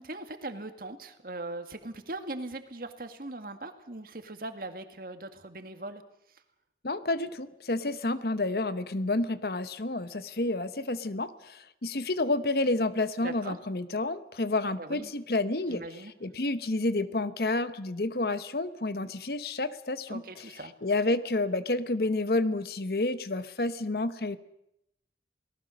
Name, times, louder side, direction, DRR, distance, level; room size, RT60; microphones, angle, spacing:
voice 1, 0.0-6.0 13.2-13.6 14.8-15.1 15.7-16.1 20.1-20.7, right 2 dB, 55° right, 7 dB, 1.9 m, -40 dB
voice 2, 6.8-15.8 16.2-20.2 20.8-24.4, left 2 dB, 60° left, 13 dB, 1.0 m, -29 dB
29.5 x 18.5 x 6.4 m, 0.81 s
head